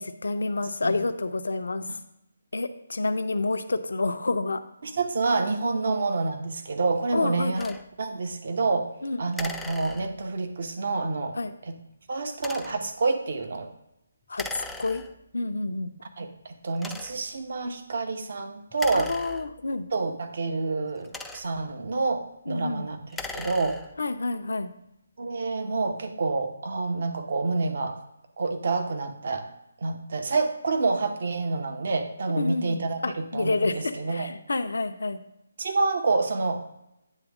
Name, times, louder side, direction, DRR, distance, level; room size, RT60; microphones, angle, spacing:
voice 1, 0.0-1.8 2.5-4.6 7.1-7.8 9.0-9.2 11.3-11.5 14.3-15.0 15.3-15.9 18.9-19.9 22.5-22.9 24.0-24.7 32.4-35.2, left 3 dB, 60° left, 9 dB, 0.6 m, -29 dB
voice 2, 4.8-7.7 8.0-8.9 9.2-11.4 11.6-11.7 12.1-13.7 16.2-19.1 19.9-23.8 25.2-28.0 28.4-29.5 29.8-34.3 35.6-36.6, right 3 dB, 50° right, 6 dB, 0.9 m, -28 dB
sound 1, 7.6-7.8 9.3-10.4 12.3-12.9 14.3-15.3 16.0-16.1 16.7-17.4 18.7-19.9 20.8-21.7 23.0-24.1, left 2 dB, 5° left, 0.3 m, -39 dB
9.1 x 3.4 x 6.0 m, 0.85 s
figure-of-eight pair, 145°, 0 cm